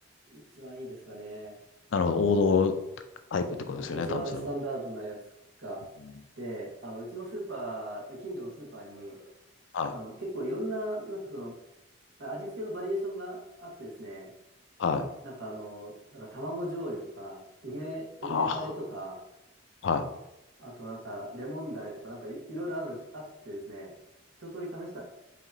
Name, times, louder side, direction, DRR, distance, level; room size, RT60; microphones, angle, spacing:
voice 1, 0.3-1.6 3.7-5.2 5.6-5.8 6.4-9.2 9.9-11.5 12.2-14.3 15.2-19.2 20.6-23.9 24.4-25.0, right 1 dB, 85° right, -4 dB, 1.3 m, -38 dB
voice 2, 1.9-2.7 3.3-4.4 9.7-9.9 14.8-15.1 18.3-18.6 19.8-20.0, left 5 dB, 80° left, 8 dB, 0.4 m, -26 dB
4.8 x 2.8 x 2.7 m, 0.90 s
head